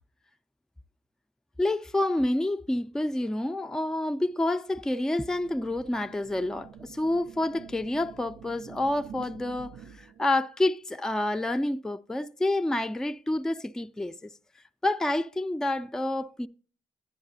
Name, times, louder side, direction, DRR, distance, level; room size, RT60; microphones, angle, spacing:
voice 1, 1.6-14.3 14.8-16.5, left 1 dB, 5° left, 0.3 m, -28 dB
sound 1, 5.2-10.2, right 7 dB, 85° right, 0.5 m, -48 dB
10.5 x 9.7 x 2.6 m
supercardioid pair, 45°, 19 cm